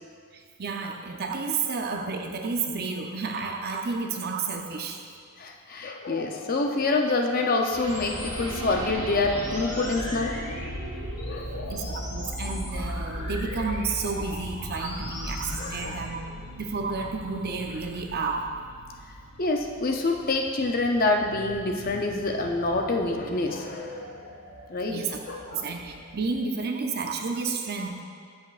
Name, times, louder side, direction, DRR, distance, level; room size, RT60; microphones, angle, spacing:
voice 1, 0.3-5.0 11.7-16.2 16.6-18.4 24.9-25.2 25.5-28.0, right 4 dB, 45° right, 3 dB, 0.6 m, -31 dB
voice 2, 5.4-10.4 11.3-11.8 15.6-16.3 19.4-24.1 24.7-25.7, left 3 dB, 40° left, 2 dB, 0.6 m, -27 dB
sound 1, 7.7-26.4, right 1 dB, 80° right, 1.0 m, -39 dB
sound 2, 7.9-15.9, left 1 dB, 80° left, 1.9 m, -38 dB
13.0 x 6.0 x 2.5 m, 2.1 s
head